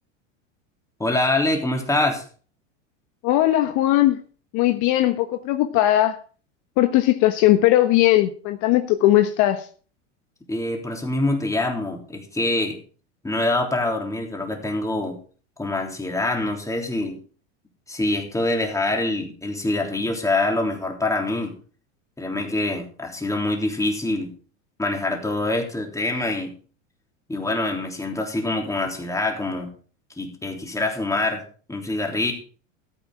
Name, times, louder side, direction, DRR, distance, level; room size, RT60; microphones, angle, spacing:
voice 1, 1.0-2.2 10.5-12.8 13.2-15.2 15.6-17.2 17.9-21.5 22.2-24.3 24.8-26.5 27.3-29.7 30.2-31.4 31.7-32.3, left 2 dB, 10° left, 2 dB, 3.3 m, -25 dB
voice 2, 3.2-4.2 4.5-6.2 6.8-9.7, left 14 dB, 50° left, 8 dB, 1.2 m, -19 dB
14.5 x 8.4 x 4.8 m, 0.40 s
hypercardioid pair, 110°, 37 cm